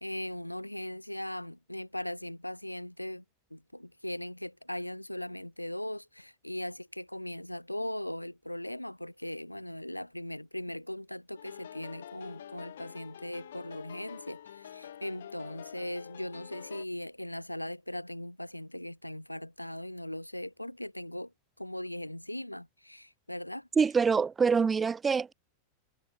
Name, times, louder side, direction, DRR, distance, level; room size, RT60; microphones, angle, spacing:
voice 1, 0.0-3.2 3.5-21.3 21.6-23.7, left 1 dB, 90° left, 0.8 m, -39 dB
sound 1, 11.4-16.9, left 10 dB, 65° left, 1.1 m, -47 dB
voice 2, 23.8-25.3, right 5 dB, 15° right, 0.6 m, -25 dB
figure-of-eight pair, 90°, 0 cm